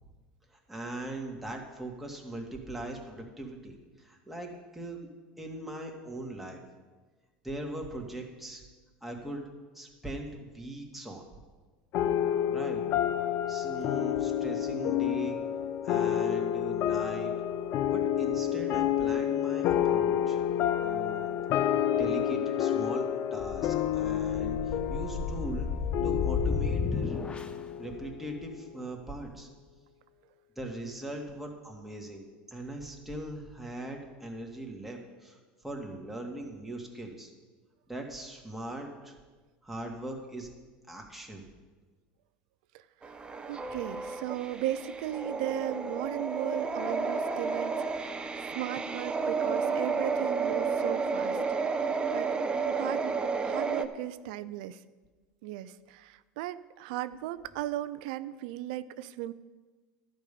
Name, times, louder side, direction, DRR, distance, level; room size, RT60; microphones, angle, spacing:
voice 1, 0.5-5.1 5.4-6.6 7.4-8.6 9.0-9.5 9.7-11.2 12.5-12.8 13.5-15.4 15.8-17.3 17.9-20.4 20.8-21.3 21.9-23.1 23.3-25.7 26.0-27.2 27.8-29.5 30.6-35.4 35.6-37.3 37.9-39.2 39.6-40.5 40.9-41.4, right 1 dB, 5° right, 0 dB, 2.3 m, -40 dB
sound 1, 11.9-28.7, left 10 dB, 55° left, 0.6 m, -29 dB
sound 2, 23.4-27.7, left 5 dB, 25° left, 0.9 m, -33 dB
sound 3, 43.0-53.9, right 4 dB, 20° right, 0.9 m, -31 dB
voice 2, 43.5-51.4 52.1-52.3 52.7-53.1 53.4-54.8 55.4-59.3, right 13 dB, 75° right, 14 dB, 0.5 m, -36 dB
11.5 x 5.4 x 8.5 m, 1.3 s
hypercardioid pair, 90°, 5 cm